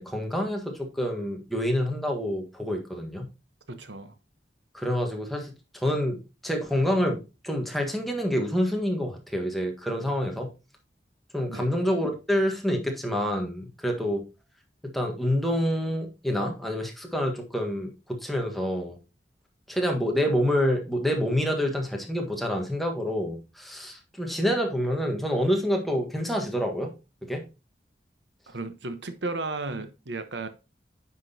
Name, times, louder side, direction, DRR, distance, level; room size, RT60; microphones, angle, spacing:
voice 1, 0.0-3.3 4.7-7.2 7.4-10.5 11.3-14.2 14.8-19.0 19.7-26.9 27.2-27.4, equal, ahead, 1.5 m, -27 dB
voice 2, 3.7-4.1 11.5-11.7 28.5-30.5, right 3 dB, 85° right, 1.1 m, -34 dB
9.5 x 6.1 x 2.8 m
head